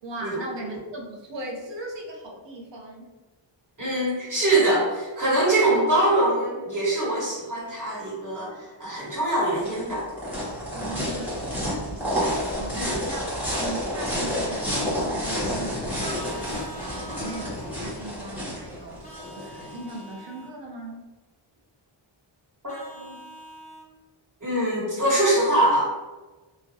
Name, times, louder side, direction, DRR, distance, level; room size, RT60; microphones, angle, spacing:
voice 1, 0.0-3.1 10.7-13.3 13.6-16.5 16.7-19.0 19.3-21.0, right 2 dB, 60° right, 0 dB, 0.6 m, -38 dB
voice 2, 3.8-10.1 12.7-13.0 22.6-23.1 24.4-25.9, right 1 dB, 40° right, -8 dB, 1.2 m, -23 dB
sound 1, 9.1-20.0, equal, 5° right, 0.8 m, -30 dB
Vehicle horn car horn honking, 16.0-17.5 19.0-20.5 22.7-23.9, right 1 dB, 15° left, 0.4 m, -43 dB
2.4 x 2.0 x 2.6 m, 1.2 s
wide cardioid pair, 105°, 49 cm